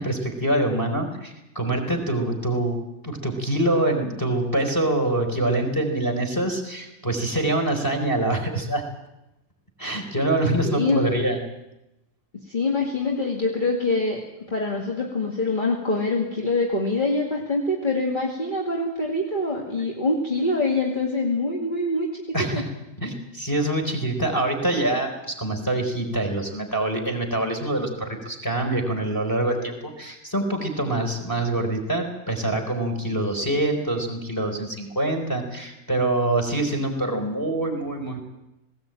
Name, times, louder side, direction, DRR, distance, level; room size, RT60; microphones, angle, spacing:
voice 1, 0.0-8.8 9.8-11.4 22.3-22.7 23.0-38.2, right 1 dB, 15° left, 5 dB, 4.3 m, -25 dB
voice 2, 10.6-11.1 12.3-14.2 14.5-22.2 22.5-22.6, left 2 dB, 35° left, -1 dB, 2.5 m, -25 dB
19.0 x 17.5 x 9.1 m, 0.92 s
omnidirectional pair, 1.5 m